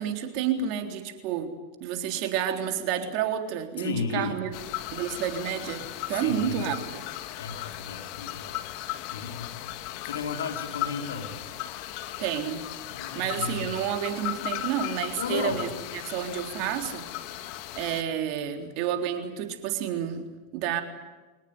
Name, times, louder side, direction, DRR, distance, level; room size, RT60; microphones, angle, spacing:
voice 1, 0.0-1.5 1.8-4.5 4.9-6.8 12.2-12.7 13.1-15.7 16.1-17.1 17.7-20.3 20.5-20.8, right 9 dB, 55° right, 5 dB, 3.7 m, -30 dB
voice 2, 3.8-4.4 6.1-6.7 7.4-8.6 9.1-9.5 10.0-11.3 12.9-13.7 15.2-15.7, left 5 dB, 80° left, 5 dB, 3.7 m, -34 dB
sound 1, 4.5-18.0, left 14 dB, 55° left, 1.9 m, -37 dB
24.5 x 19.5 x 9.7 m, 1.2 s
hypercardioid pair, 100°, 0 cm